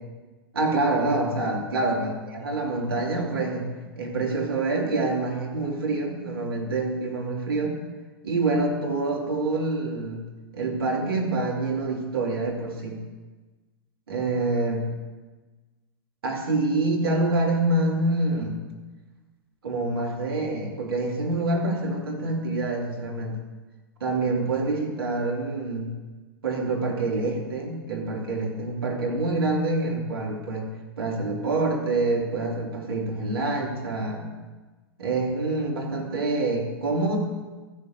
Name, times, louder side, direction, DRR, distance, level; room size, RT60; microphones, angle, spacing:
voice 1, 0.5-3.7 4.0-7.8 8.2-10.2 10.5-13.0 14.1-14.9 16.2-18.6 19.6-23.4 24.0-25.9 26.4-30.7 31.0-34.3 35.0-37.2, right 2 dB, 75° right, 0 dB, 2.9 m, -26 dB
14.5 x 6.6 x 8.0 m, 1.3 s
hypercardioid pair, 105°, 12 cm